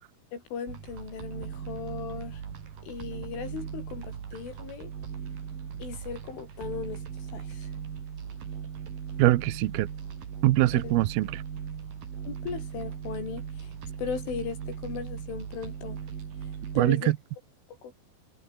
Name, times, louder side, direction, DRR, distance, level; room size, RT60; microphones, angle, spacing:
voice 1, 0.3-2.4 2.9-4.9 5.8-7.0 7.3-7.7 10.7-11.0 12.3-13.4 14.0-16.0 16.8-17.1 17.8-17.9, left 6 dB, 75° left, 7.5 m, -37 dB
sound 1, 0.7-16.9, right 7 dB, 50° right, 4.6 m, -38 dB
voice 2, 9.2-9.9 10.4-11.4 16.8-17.2, right 16 dB, 80° right, 2.2 m, -23 dB
omnidirectional pair, 5.6 m